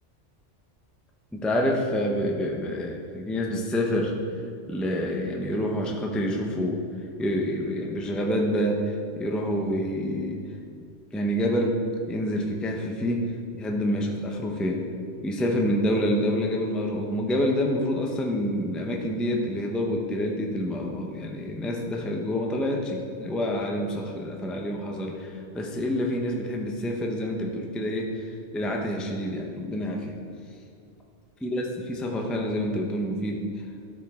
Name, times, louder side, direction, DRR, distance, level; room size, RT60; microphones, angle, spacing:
voice 1, 1.3-4.2 4.7-6.8 7.2-10.4 11.1-11.8 12.1-14.9 15.2-30.2 31.4-33.4, equal, ahead, 0 dB, 0.5 m, -27 dB
12.5 x 5.1 x 3.6 m, 2.4 s
omnidirectional pair, 1.2 m